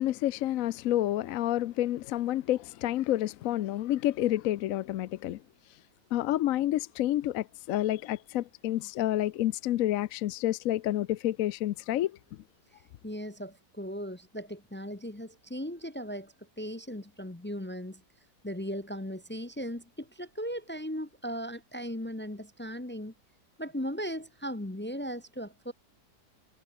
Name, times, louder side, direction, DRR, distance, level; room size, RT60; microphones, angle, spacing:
voice 1, 0.0-5.4 6.1-12.2, left 13 dB, 70° left, 0.9 m, -29 dB
voice 2, 13.0-18.0 18.4-23.1 23.6-25.7, equal, 15° left, 0.4 m, -37 dB
omnidirectional pair, 1.8 m